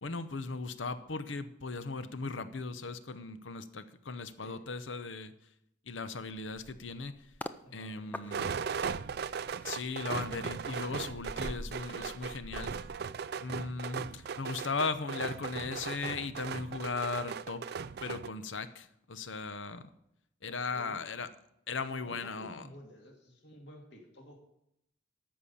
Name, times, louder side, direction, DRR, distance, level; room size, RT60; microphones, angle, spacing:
voice 1, 0.0-5.3 5.9-7.2 7.7-8.5 9.6-12.8 13.4-17.7 18.0-19.9 20.4-21.3 21.7-22.6, left 4 dB, 80° left, 12 dB, 0.8 m, -37 dB
sound 1, 6.3-7.6 8.1-13.7 14.0-14.3, left 1 dB, 10° left, 0.4 m, -47 dB
voice 2, 7.6-8.8 20.5-21.0 21.9-24.4, left 1 dB, 60° left, 1 dB, 2.5 m, -52 dB
sound 2, 8.3-18.3, right 6 dB, 55° right, 0.4 m, -38 dB
13.5 x 5.7 x 7.0 m, 0.79 s
head